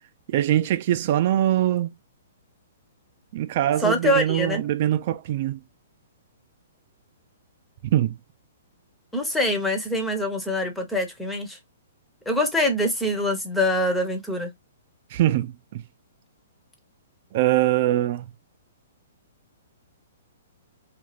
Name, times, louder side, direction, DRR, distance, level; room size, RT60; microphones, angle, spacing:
voice 1, 0.3-1.9 3.3-5.6 7.8-8.2 15.1-15.8 17.3-18.3, right 13 dB, 45° right, 0.4 m, -23 dB
voice 2, 3.8-4.6 9.1-11.6 12.3-14.5, left 1 dB, 5° left, 0.7 m, -24 dB
2.5 x 2.3 x 3.1 m
hypercardioid pair, 155°, 0 cm